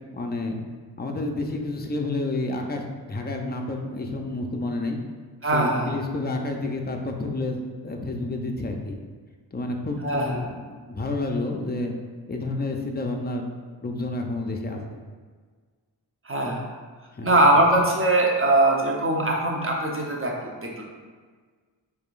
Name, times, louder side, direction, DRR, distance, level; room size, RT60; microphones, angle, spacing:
voice 1, 0.1-0.6 1.0-5.0 5.5-7.6 7.8-9.0 9.5-11.9 12.3-13.5 13.8-15.0 17.1-17.3, left 2 dB, 20° left, 2 dB, 0.6 m, -30 dB
voice 2, 5.4-6.0 10.0-10.5 16.2-16.7 17.2-20.8, right 1 dB, 30° right, -1 dB, 0.9 m, -21 dB
4.6 x 3.5 x 2.5 m, 1.5 s
cardioid pair, 50°, 44 cm